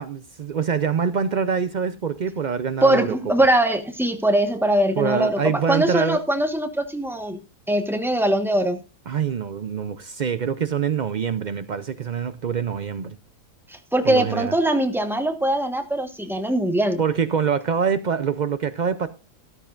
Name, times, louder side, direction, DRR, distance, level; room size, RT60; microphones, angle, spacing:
voice 1, 0.0-3.2 5.0-6.2 9.1-13.2 14.0-14.5 17.0-19.1, right 7 dB, 80° right, 0.4 m, -25 dB
voice 2, 2.8-7.4 7.7-8.8 13.7-17.0, right 1 dB, ahead, 1.1 m, -21 dB
13.5 x 13.5 x 2.5 m
omnidirectional pair, 1.6 m